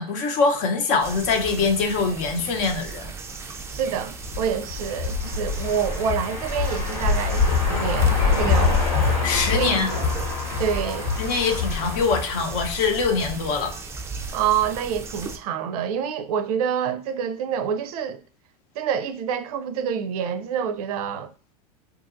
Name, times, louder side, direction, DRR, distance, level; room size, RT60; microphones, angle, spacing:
voice 1, 0.0-3.1 9.2-9.9 11.2-13.7, left 4 dB, 55° left, 0.8 m, -23 dB
sound 1, 1.0-15.4, right 4 dB, 15° right, 0.3 m, -37 dB
voice 2, 3.7-7.4 7.7-8.8 9.5-9.8 10.5-11.1 14.3-18.2 18.8-21.3, right 7 dB, 70° right, 0.5 m, -27 dB
sound 2, 4.2-13.5, left 4 dB, 75° left, 1.2 m, -24 dB
2.8 x 2.6 x 2.5 m
hypercardioid pair, 100°, 20 cm